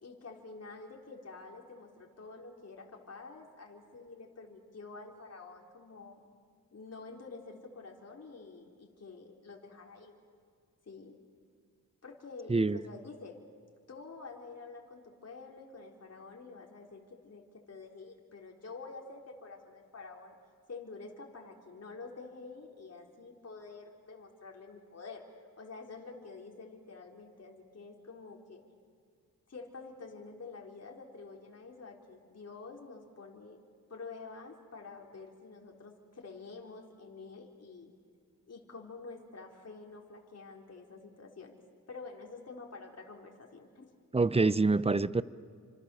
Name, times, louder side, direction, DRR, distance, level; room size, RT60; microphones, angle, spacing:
voice 1, 0.0-6.3 6.7-10.2 10.9-11.2 12.0-13.4 13.9-20.3 20.7-28.6 29.5-33.6 33.9-37.9 38.4-41.5 41.9-43.9, left 4 dB, 45° left, 1 dB, 3.9 m, -48 dB
voice 2, 44.1-45.2, right 3 dB, 15° right, 17 dB, 0.7 m, -26 dB
29.5 x 26.5 x 7.0 m, 2.1 s
cardioid pair, 75°, 36 cm